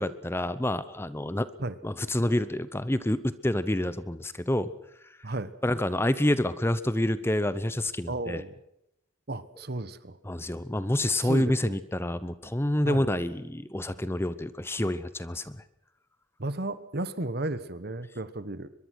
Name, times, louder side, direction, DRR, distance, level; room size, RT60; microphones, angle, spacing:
voice 1, 0.0-1.5 1.8-4.7 5.6-8.4 10.2-15.6, left 1 dB, 10° left, 14 dB, 0.8 m, -28 dB
voice 2, 8.1-8.5 9.3-10.2 11.2-11.8 12.8-13.0 16.4-18.7, right 2 dB, 55° right, 14 dB, 1.3 m, -33 dB
23.5 x 21.5 x 6.4 m, 0.81 s
head